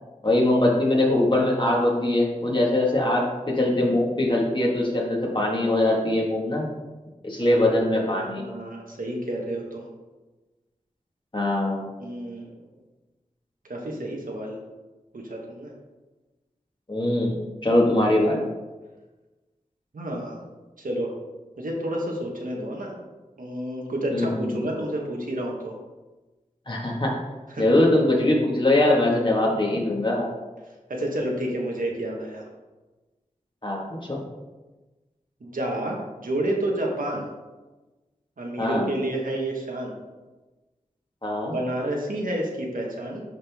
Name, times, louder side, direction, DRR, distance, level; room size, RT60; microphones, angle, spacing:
voice 1, 0.2-6.7 7.2-8.4 11.3-11.9 16.9-17.4 17.6-18.4 24.1-24.6 26.7-27.1 27.6-30.3 33.6-34.2 38.6-38.9 41.2-41.5, left 1 dB, 35° left, -2 dB, 1.7 m, -22 dB
voice 2, 8.0-9.9 12.0-12.5 13.7-14.6 15.1-15.7 19.9-20.4 20.8-21.1 21.6-22.9 23.4-25.7 27.5-27.7 30.9-32.4 35.4-37.3 38.4-39.9 41.4-43.2, right 1 dB, 80° right, -1 dB, 1.4 m, -30 dB
10.5 x 3.8 x 3.6 m, 1.2 s
wide cardioid pair, 60°, 14 cm